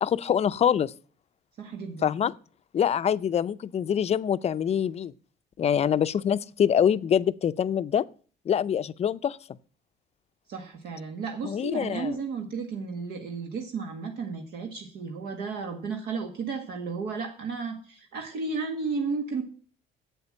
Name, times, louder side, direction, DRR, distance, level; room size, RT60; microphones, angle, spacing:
voice 1, 0.0-0.9 2.0-2.3 2.7-5.1 5.6-8.0 8.5-9.4 11.4-12.2, left 8 dB, 40° left, 0.5 m, -25 dB
voice 2, 1.6-2.1 10.5-19.4, right 4 dB, 75° right, 1.8 m, -33 dB
8.2 x 8.0 x 8.7 m
cardioid pair, 110°, 17 cm